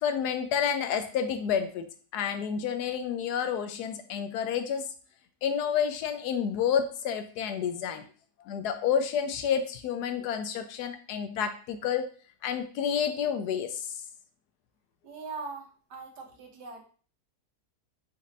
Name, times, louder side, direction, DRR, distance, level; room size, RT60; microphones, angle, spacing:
voice 1, 0.0-1.9 2.1-4.9 5.4-8.0 8.4-12.0 12.4-13.9, left 8 dB, 80° left, 7 dB, 1.1 m, -29 dB
voice 2, 15.0-16.8, right 4 dB, 80° right, 3 dB, 1.4 m, -41 dB
4.1 x 2.6 x 3.9 m, 0.41 s
omnidirectional pair, 1.7 m